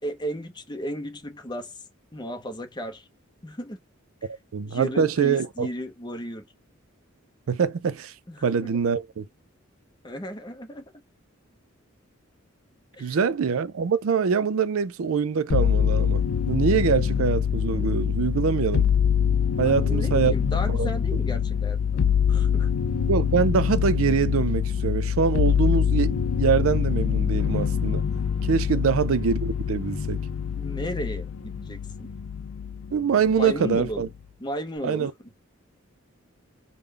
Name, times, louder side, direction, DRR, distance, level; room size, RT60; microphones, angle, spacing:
voice 1, 0.0-1.7 2.1-3.1 3.4-3.8 4.7-6.4 8.3-8.7 10.0-10.9 12.9-13.2 19.6-22.7 28.7-28.9 30.5-32.1 33.4-34.1 34.4-35.1, equal, 20° left, 0.7 m, -34 dB
voice 2, 4.5-5.7 7.5-8.1 8.4-9.2 13.0-18.9 19.6-20.9 23.1-28.0 28.4-30.2 32.9-34.1 34.8-35.1, right 6 dB, 80° right, 0.4 m, -24 dB
sound 1, 15.5-32.9 33.3-34.0, left 7 dB, 85° left, 0.5 m, -24 dB
3.7 x 2.1 x 3.2 m
head